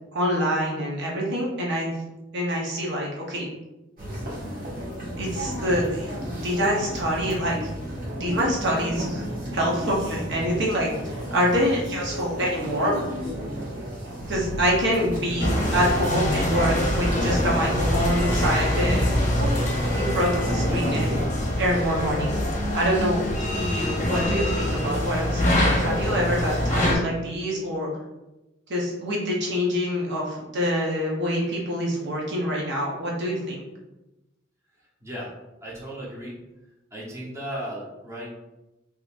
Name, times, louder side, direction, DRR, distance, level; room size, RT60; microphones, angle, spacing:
voice 1, 0.1-1.9 2.3-3.5 5.2-7.7 8.1-9.3 9.5-12.9 14.3-19.1 19.9-21.2 21.6-22.3 22.7-23.3 23.5-27.9 28.7-33.6, equal, 60° right, -3 dB, 0.8 m, -26 dB
sound 1, 4.0-21.2, equal, 45° right, 1.4 m, -32 dB
sound 2, 14.2-17.7 17.9-22.9 23.2-23.4, equal, 85° left, 0.3 m, -37 dB
sound 3, 15.4-27.0, left 1 dB, 40° left, 0.7 m, -25 dB
voice 2, 35.0-35.3 35.6-36.4 36.9-38.3, equal, 15° right, -5 dB, 0.9 m, -35 dB
3.8 x 2.9 x 2.5 m, 1.0 s
head